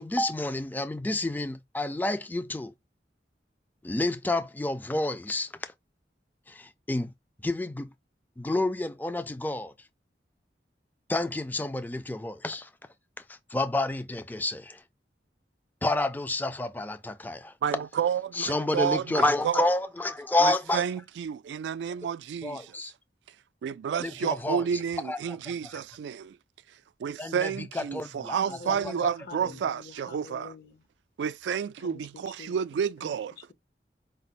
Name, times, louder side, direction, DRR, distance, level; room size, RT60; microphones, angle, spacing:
voice 1, 0.0-2.7 3.8-5.7 6.5-7.1 7.4-7.9 8.4-9.7 11.1-12.7 13.2-14.8 15.8-17.5 18.3-20.8 22.4-22.9 24.0-24.7 25.0-25.8 27.2-28.9, left 2 dB, 10° left, 0.4 m, -29 dB
voice 2, 17.6-19.6 20.4-22.6 23.6-26.4 27.0-30.5 31.2-33.3, right 7 dB, 80° right, 0.3 m, -30 dB
voice 3, 28.3-30.8 31.8-32.6 33.0-33.5, left 5 dB, 60° left, 0.8 m, -47 dB
5.1 x 2.0 x 4.0 m
head